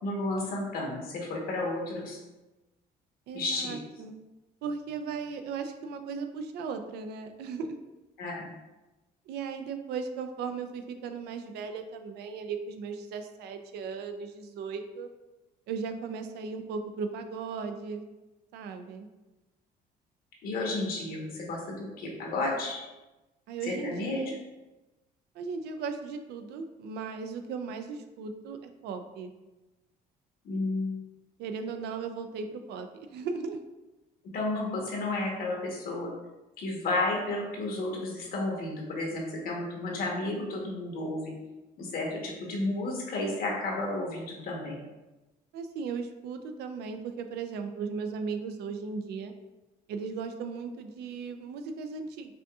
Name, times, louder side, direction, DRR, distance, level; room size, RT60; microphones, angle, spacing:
voice 1, 0.0-2.2 3.3-3.8 8.2-8.5 20.4-22.8 23.6-24.3 30.4-31.0 34.3-36.1 36.6-41.3 41.8-44.8, left 2 dB, 60° left, -1 dB, 1.1 m, -32 dB
voice 2, 3.3-4.2 4.6-7.8 9.3-15.1 15.7-18.0 18.5-19.1 23.5-24.4 25.3-29.3 31.4-33.6 45.5-49.3 49.9-52.3, right 5 dB, 75° right, 7 dB, 0.4 m, -37 dB
5.0 x 2.7 x 2.3 m, 1.1 s
cardioid pair, 110°, 17 cm